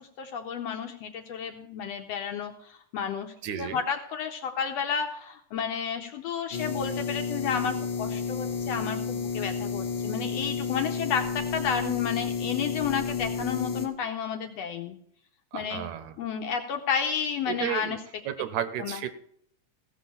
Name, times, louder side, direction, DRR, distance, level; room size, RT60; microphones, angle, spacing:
voice 1, 0.0-15.0 15.5-15.8 16.2-18.0 18.8-19.0, left 7 dB, 75° left, 4 dB, 1.6 m, -31 dB
voice 2, 3.4-3.8 15.5-16.1 17.5-18.0 18.3-19.1, right 10 dB, 80° right, 11 dB, 1.9 m, -32 dB
sound 1, 6.5-13.9, left 5 dB, 55° left, 2.0 m, -31 dB
16.0 x 6.6 x 5.7 m, 0.68 s
omnidirectional pair, 3.6 m